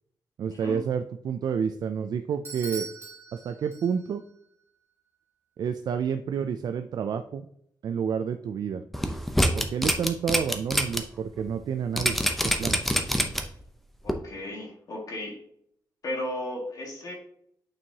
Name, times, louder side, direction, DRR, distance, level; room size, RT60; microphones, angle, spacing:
voice 1, 0.4-2.9 3.3-4.2 5.6-7.5 7.8-8.8 9.5-12.2 12.6-12.8, right 7 dB, 60° right, 8 dB, 0.4 m, -29 dB
Bell / Doorbell, 2.4-4.3, right 4 dB, 35° right, 1.8 m, -41 dB
sound 1, 8.9-11.0 11.4-11.5 12.0-13.6 14.1-14.2, equal, ahead, 0.6 m, -25 dB
voice 2, 14.0-15.4 16.0-17.1, left 1 dB, 55° left, -2 dB, 1.8 m, -35 dB
8.7 x 4.6 x 2.8 m, 0.71 s
wide cardioid pair, 155°, 8 cm